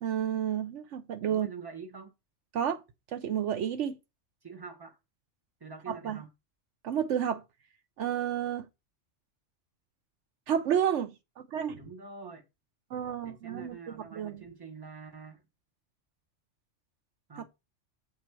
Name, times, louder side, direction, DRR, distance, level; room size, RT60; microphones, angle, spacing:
voice 1, 0.0-1.5 2.5-2.8 3.1-4.0 5.9-6.2 6.8-7.4 8.0-8.7 10.5-11.1 11.4-11.8 12.9-14.4 17.4-17.5, right 9 dB, 75° right, 1.0 m, -31 dB
voice 2, 1.2-2.1 4.4-5.0 5.6-6.3 11.7-12.5 13.2-15.4 17.3-17.5, right 5 dB, 20° right, 1.1 m, -45 dB
7.4 x 4.0 x 4.6 m
omnidirectional pair, 1.3 m